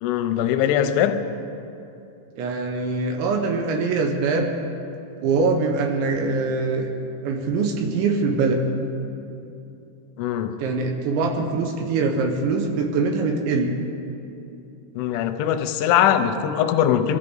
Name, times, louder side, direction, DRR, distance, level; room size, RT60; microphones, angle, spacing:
voice 1, 0.0-1.2 10.2-10.6 15.0-17.2, left 10 dB, 90° left, 9 dB, 3.2 m, -21 dB
voice 2, 2.4-4.5 5.2-6.9 7.2-8.6 10.6-13.7, right 4 dB, 80° right, 3 dB, 3.4 m, -23 dB
22.5 x 14.5 x 3.9 m, 2.7 s
omnidirectional pair, 5.3 m